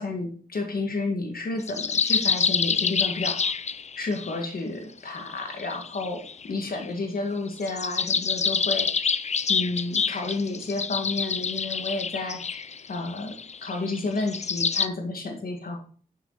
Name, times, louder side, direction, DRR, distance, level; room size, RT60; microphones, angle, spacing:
voice 1, 0.0-3.5 4.0-9.2 9.5-12.6 12.9-15.8, left 3 dB, 75° left, 3 dB, 1.9 m, -31 dB
sound 1, 1.7-4.4 5.1-6.9 7.6-14.9, left 6 dB, 50° left, 0.5 m, -27 dB
9.4 x 6.7 x 4.0 m, 0.42 s
cardioid pair, 50°, 15 cm